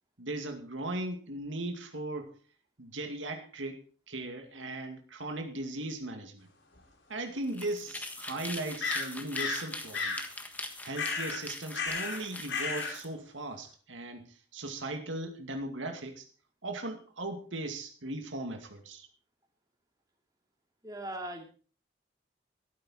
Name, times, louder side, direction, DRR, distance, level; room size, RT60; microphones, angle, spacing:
voice 1, 0.2-2.3 2.8-3.8 4.1-6.5 7.1-10.2 10.8-16.3 16.6-19.1, right 2 dB, 85° right, 5 dB, 2.4 m, -38 dB
sound 1, 6.8-6.9 8.8-9.7 9.9-10.2 10.9-11.4 11.7-12.2 12.5-12.9, left 4 dB, 80° left, 3.8 m, -33 dB
sound 2, 7.4-13.1, left 2 dB, 10° left, 1.5 m, -42 dB
voice 2, 20.8-21.4, right 1 dB, 20° right, 2 dB, 2.8 m, -39 dB
14.0 x 12.5 x 4.4 m, 0.39 s
head